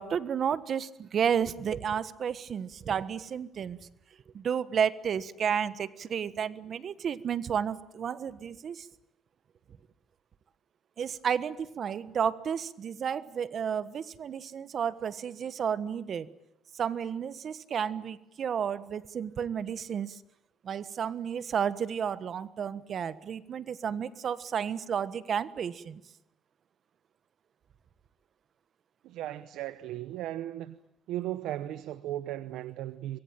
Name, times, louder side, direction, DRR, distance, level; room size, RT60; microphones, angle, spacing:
voice 1, 0.0-3.8 4.3-8.9 11.0-16.3 16.8-20.2 20.6-26.0, right 8 dB, 55° right, 1.4 m, -32 dB
voice 2, 29.0-30.8 31.1-33.2, right 13 dB, 85° right, 0.9 m, -36 dB
25.0 x 22.0 x 9.1 m
cardioid pair, 90°, 0 cm